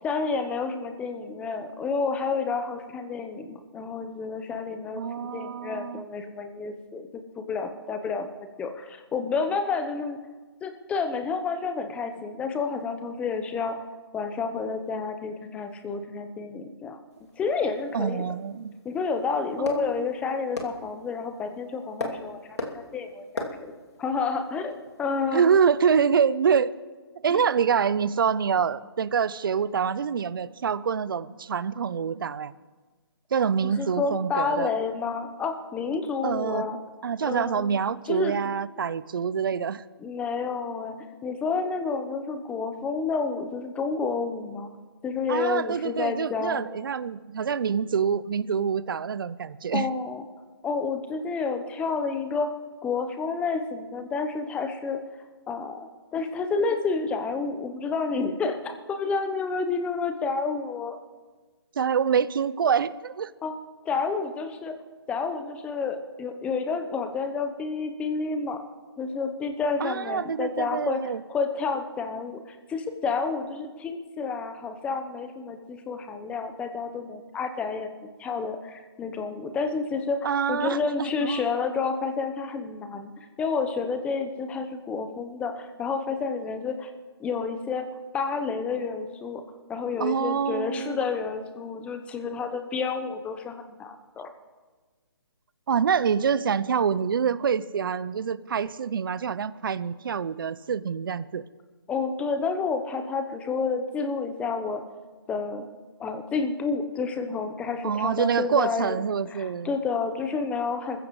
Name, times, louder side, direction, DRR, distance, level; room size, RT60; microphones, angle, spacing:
voice 1, 0.0-8.3 8.6-10.2 10.6-13.9 14.1-17.0 17.4-18.3 18.8-22.4 22.7-23.7 24.0-25.6 27.3-27.4 33.6-36.8 37.2-37.8 38.1-38.5 40.0-41.0 41.2-44.7 45.0-46.6 49.7-50.2 50.6-52.5 52.8-55.0 55.5-61.0 63.4-63.5 63.8-64.7 65.1-68.6 69.0-77.9 78.2-83.1 83.4-86.9 87.2-87.9 88.1-89.4 89.7-94.3 101.9-104.8 105.3-105.7 106.0-109.0 109.3-111.1, left 4 dB, 10° left, 7 dB, 0.9 m, -30 dB
voice 2, 5.0-6.0 17.9-18.7 19.6-20.1 25.3-26.7 27.2-32.5 33.3-34.7 36.2-39.8 45.3-49.9 61.8-63.3 69.8-71.2 80.2-81.4 90.0-91.0 95.7-101.4 107.8-109.8, right 7 dB, 55° right, 18 dB, 0.7 m, -26 dB
sound 1, 17.1-26.0, left 2 dB, 90° left, 2.7 m, -41 dB
25.5 x 15.0 x 3.2 m, 1.4 s
hypercardioid pair, 150°, 13 cm